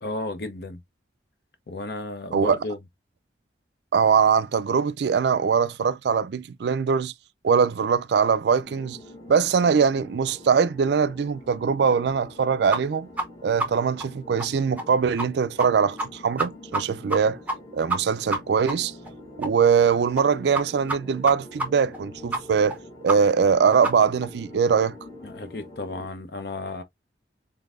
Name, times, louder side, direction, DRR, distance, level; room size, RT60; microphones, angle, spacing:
voice 1, 0.0-0.8 1.7-2.8 25.2-26.8, left 2 dB, 60° left, 0.8 m, -33 dB
voice 2, 3.9-7.1 7.4-9.0 9.3-13.1 13.4-17.4 17.7-18.9 19.4-22.8 23.0-25.0, right 6 dB, 65° right, 0.3 m, -22 dB
sound 1, 8.6-26.1, left 1 dB, 25° left, 1.1 m, -45 dB
sound 2, 12.7-12.8 13.2-13.3 13.6-13.7 14.0-14.1 14.4-14.5 14.8-14.9 15.2-15.3 15.6-15.7 16.0-16.1 16.4-16.8 17.1-17.2 17.5-17.6 17.9-18.0 18.3-18.4 18.7-18.8 19.1-19.2 19.4-19.5 19.8-19.9 20.2-20.3 20.5-20.6 20.9-21.0 21.3-21.4 21.6-21.7 21.9-22.0 22.3-22.4 22.7-22.8 23.1-23.2 23.5-23.6 23.8-23.9 24.2-24.3, right 2 dB, 10° right, 0.6 m, -27 dB
3.8 x 3.5 x 2.4 m
head